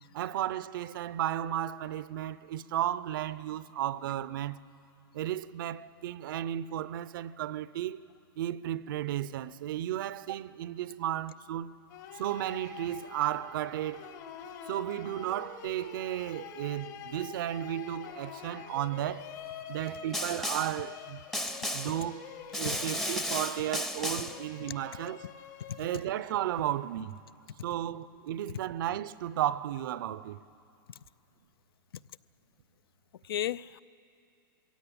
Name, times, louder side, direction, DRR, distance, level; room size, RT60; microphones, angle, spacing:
voice 1, 0.1-4.6 5.1-8.1 8.4-11.7 12.1-14.0 14.7-19.3 19.7-21.2 21.7-22.3 22.5-25.2 25.8-27.2 27.6-30.4, right 12 dB, 65° right, 0.6 m, -34 dB
sound 1, 11.9-27.0, left 8 dB, 55° left, 1.8 m, -46 dB
Snare drum, 20.1-20.8 21.3-22.0 22.5-24.4, equal, 5° left, 0.6 m, -34 dB
voice 2, 33.2-33.8, left 11 dB, 90° left, 0.4 m, -35 dB
22.0 x 16.5 x 8.6 m
hypercardioid pair, 140°, 12 cm